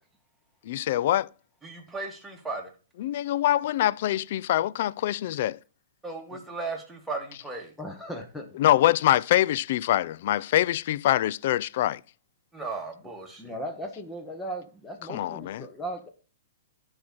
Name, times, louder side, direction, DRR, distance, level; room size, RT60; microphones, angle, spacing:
voice 1, 0.7-1.3 3.0-5.6 8.6-12.0 15.1-15.6, left 13 dB, 55° left, 0.3 m, -24 dB
voice 2, 1.6-2.7 6.0-7.7 12.5-13.6, right 3 dB, 5° right, 2.1 m, -36 dB
voice 3, 7.8-8.6 13.4-16.1, equal, 10° left, 1.2 m, -37 dB
13.5 x 4.8 x 4.2 m
hypercardioid pair, 140°, 0 cm